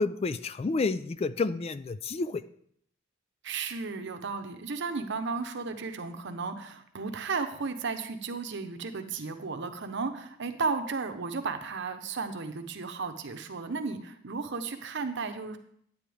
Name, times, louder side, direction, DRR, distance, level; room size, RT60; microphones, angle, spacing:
voice 1, 0.0-2.4, left 3 dB, 30° left, 14 dB, 0.3 m, -29 dB
voice 2, 3.4-15.6, right 4 dB, 60° right, 8 dB, 0.8 m, -34 dB
9.5 x 9.4 x 3.5 m, 0.67 s
head